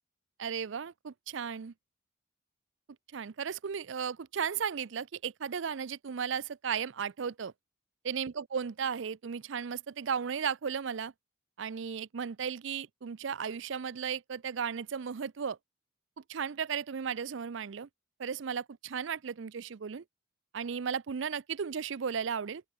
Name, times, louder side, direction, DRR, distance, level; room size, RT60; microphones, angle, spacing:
voice 1, 0.4-1.7 3.1-7.5 8.0-11.1 11.6-15.6 16.2-17.9 18.2-20.0 20.5-22.6, right 7 dB, 70° right, 0.5 m, -35 dB
open air
head